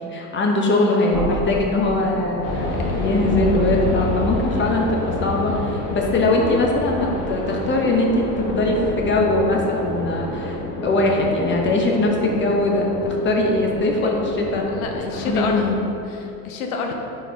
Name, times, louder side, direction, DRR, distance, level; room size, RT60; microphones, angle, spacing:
voice 1, 0.0-14.7 15.3-15.8, left 2 dB, 25° left, 0 dB, 1.0 m, -21 dB
sound 1, 1.1-7.0, right 1 dB, ahead, 1.2 m, -34 dB
sound 2, 2.4-15.8, left 1 dB, 50° left, 1.4 m, -28 dB
voice 2, 14.7-15.7 16.1-16.9, left 4 dB, 75° left, 3 dB, 1.0 m, -28 dB
4.9 x 4.4 x 4.6 m, 2.8 s
supercardioid pair, 105°, 43 cm